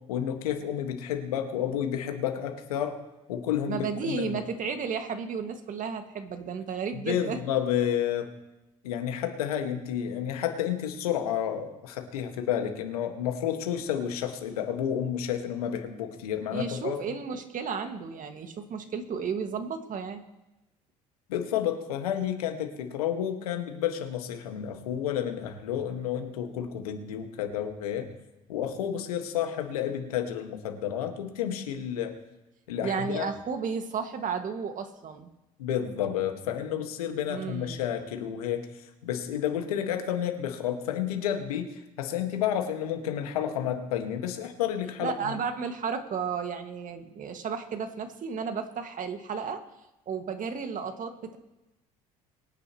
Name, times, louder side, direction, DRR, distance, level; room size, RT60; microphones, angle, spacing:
voice 1, 0.1-3.0 3.3-4.3 7.1-8.3 8.8-17.0 21.3-28.1 28.5-32.1 32.7-33.3 35.6-38.7 39.0-41.7 42.0-45.1, left 9 dB, 85° left, 5 dB, 1.8 m, -30 dB
voice 2, 3.7-7.4 16.5-20.2 32.8-35.3 37.3-37.8 45.0-49.6 50.1-51.4, right 6 dB, 45° right, 6 dB, 2.0 m, -33 dB
23.5 x 9.9 x 3.1 m, 0.99 s
hypercardioid pair, 65°, 19 cm